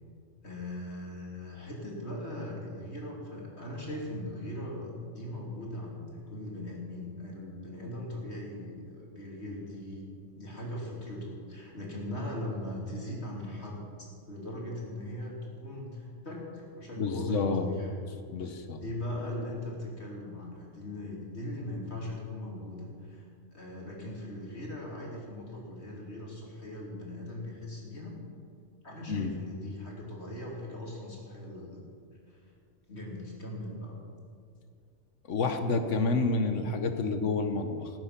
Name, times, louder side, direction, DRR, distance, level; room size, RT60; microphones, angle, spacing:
voice 1, 0.4-10.1 10.4-17.9 18.8-28.2 28.8-31.9 32.3-32.4 32.9-34.0, left 1 dB, 60° left, -3 dB, 3.4 m, -39 dB
voice 2, 17.0-17.7 18.3-18.8 29.1-29.3 35.3-37.9, left 3 dB, 85° left, 7 dB, 1.5 m, -29 dB
18.5 x 9.5 x 5.9 m, 2.3 s
omnidirectional pair, 1.2 m